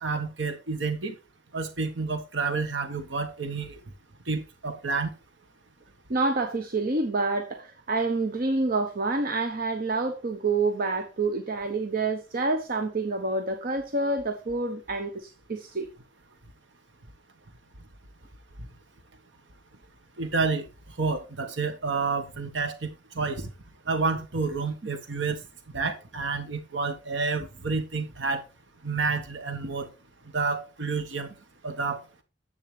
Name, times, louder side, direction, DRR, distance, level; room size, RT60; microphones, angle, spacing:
voice 1, 0.0-1.1 1.5-3.8 4.3-5.1 20.2-20.7 21.0-22.9 23.1-23.5 23.9-25.4 25.7-28.4 28.8-29.9 30.3-31.3 31.6-32.0, right 4 dB, 90° right, 1.3 m, -29 dB
voice 2, 6.1-15.9, right 3 dB, 55° right, 1.0 m, -28 dB
10.5 x 8.2 x 3.3 m
head